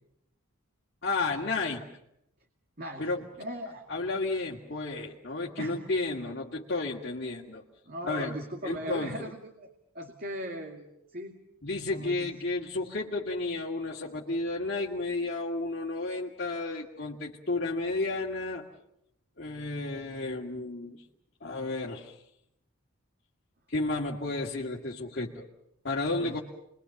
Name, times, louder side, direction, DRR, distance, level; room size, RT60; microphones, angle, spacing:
voice 1, 1.0-1.9 3.0-3.2 3.9-7.6 8.0-8.4 8.6-9.1 11.6-18.6 19.4-21.0 21.4-22.2 23.7-25.5 25.8-26.4, left 2 dB, 50° left, -1 dB, 2.0 m, -32 dB
voice 2, 2.8-3.1 3.4-3.9 5.6-5.9 7.8-11.4 11.9-12.3 26.2-26.4, equal, 45° right, 3 dB, 2.3 m, -39 dB
29.5 x 22.0 x 7.1 m, 0.81 s
head